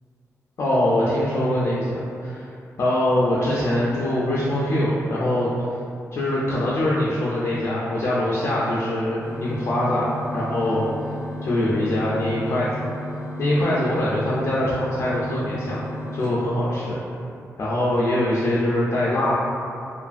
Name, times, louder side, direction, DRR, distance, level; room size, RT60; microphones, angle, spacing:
voice 1, 0.6-2.5 2.8-5.5 6.1-10.9 11.4-12.8 13.4-15.8 16.1-17.0 17.6-19.3, left 1 dB, 55° left, -8 dB, 0.3 m, -23 dB
sound 1, 9.2-17.2, left 1 dB, 50° right, 1.0 m, -34 dB
2.5 x 2.4 x 2.4 m, 2.5 s
wide cardioid pair, 135°, 6 cm